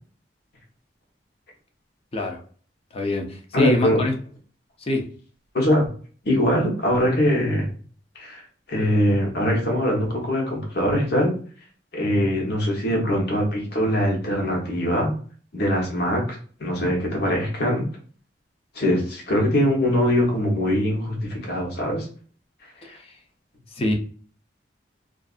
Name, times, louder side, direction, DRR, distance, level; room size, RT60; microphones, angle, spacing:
voice 1, 2.9-4.1 4.8-5.1 22.8-23.0 23.8-23.9, left 2 dB, 35° left, 3 dB, 0.6 m, -24 dB
voice 2, 3.5-4.0 5.5-5.9 6.2-7.7 8.1-8.4 8.7-11.3 11.9-15.1 15.5-17.9 18.7-22.1 22.9-23.0, equal, 60° left, 0 dB, 1.0 m, -22 dB
2.6 x 2.4 x 2.4 m, 0.43 s
head